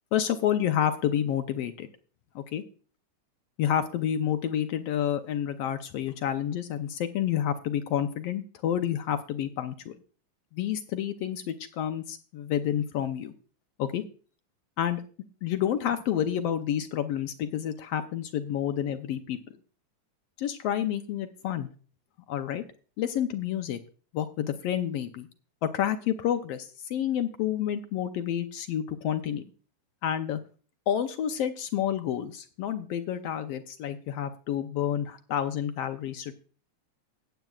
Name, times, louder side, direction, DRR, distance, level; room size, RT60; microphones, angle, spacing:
voice 1, 0.1-1.9 2.3-2.6 3.6-10.0 10.5-13.3 13.8-14.0 14.8-15.0 15.4-19.4 20.4-21.7 22.3-22.6 23.0-23.8 24.1-25.3 25.6-29.4 30.0-30.4 30.9-36.3, left 10 dB, 75° left, 9 dB, 1.5 m, -29 dB
19.5 x 8.1 x 2.3 m, 0.38 s
omnidirectional pair, 3.4 m